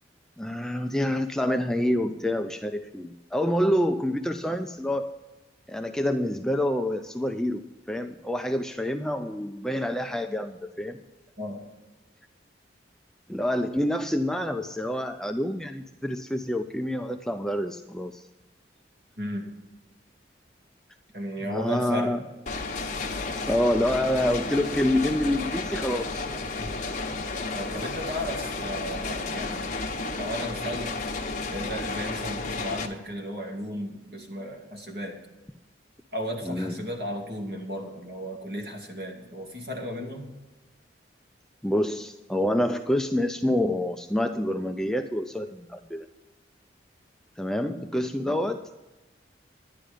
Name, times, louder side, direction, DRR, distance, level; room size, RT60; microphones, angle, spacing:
voice 1, 0.4-5.1 5.7-11.0 13.3-18.3 21.5-22.2 23.5-26.3 36.4-36.9 41.6-46.1 47.4-48.8, left 1 dB, 5° left, 6 dB, 0.4 m, -27 dB
voice 2, 19.2-19.5 21.1-22.1 27.5-29.8 30.1-31.0 31.5-35.2 36.1-40.3 48.2-48.4, equal, 55° right, 0 dB, 2.4 m, -34 dB
sound 1, 22.5-32.9, left 3 dB, 40° left, 1.1 m, -32 dB
11.5 x 10.0 x 5.1 m, 1.1 s
head